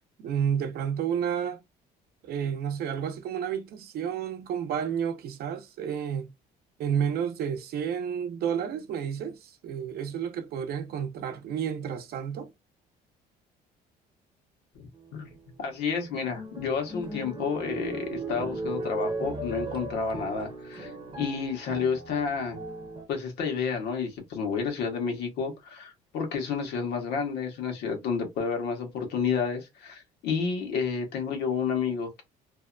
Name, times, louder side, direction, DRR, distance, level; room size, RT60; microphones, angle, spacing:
voice 1, 0.2-1.6 2.2-6.3 6.8-12.5, right 8 dB, 65° right, 0.6 m, -31 dB
sound 1, 15.0-15.4 15.9-23.0, right 2 dB, 30° right, 0.8 m, -37 dB
voice 2, 15.6-20.9 21.2-22.6 23.1-32.2, left 5 dB, 80° left, 1.1 m, -30 dB
2.7 x 2.1 x 2.4 m
cardioid pair, 110°, 17 cm